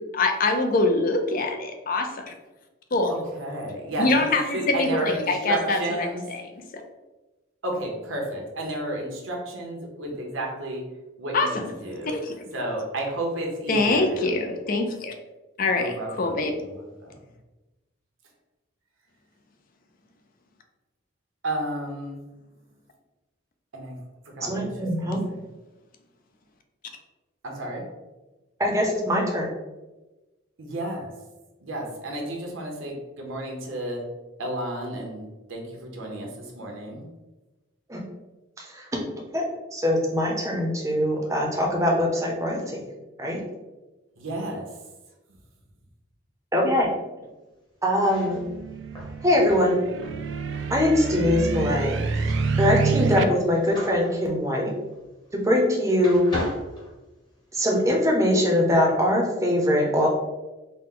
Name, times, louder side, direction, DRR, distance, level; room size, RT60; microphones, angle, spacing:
voice 1, 0.0-2.3 2.9-3.1 4.0-6.1 11.3-11.7 12.0-12.4 13.7-15.1 15.6-15.9 16.2-16.5, left 2 dB, 45° left, 5 dB, 0.4 m, -24 dB
voice 2, 3.1-6.2 7.6-10.9 11.2-12.2 12.5-14.3 15.7-17.2 21.4-22.2 23.7-24.0 24.2-25.1 27.4-27.9 30.6-31.2 31.6-34.0 34.4-37.1 44.2-44.8, right 1 dB, 80° right, 0 dB, 0.9 m, -32 dB
voice 3, 24.5-25.2 28.6-29.5 37.9-38.0 38.6-39.0 39.3-39.5 39.7-42.9 43.2-43.4 46.5-46.9 47.8-48.4 49.2-49.8 50.7-54.7 55.3-56.3 57.5-60.1, left 1 dB, 15° right, -1 dB, 0.6 m, -22 dB
sound 1, 47.9-55.7 56.0-57.6, left 1 dB, 20° left, 1.0 m, -39 dB
sound 2, 48.3-53.2, right 4 dB, 60° right, 0.3 m, -27 dB
4.1 x 2.1 x 3.7 m, 1.1 s
head